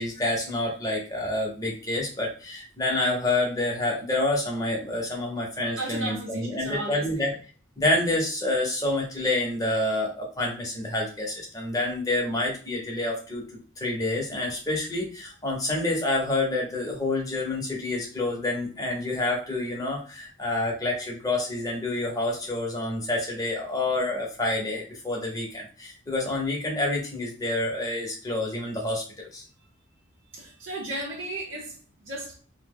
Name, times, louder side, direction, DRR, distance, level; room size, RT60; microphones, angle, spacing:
voice 1, 0.0-7.3 7.8-13.4 13.8-29.4, left 2 dB, 15° left, 0.8 m, -28 dB
voice 2, 5.8-7.3 30.3-32.4, right 1 dB, 75° right, 0.7 m, -35 dB
2.8 x 2.0 x 3.4 m
head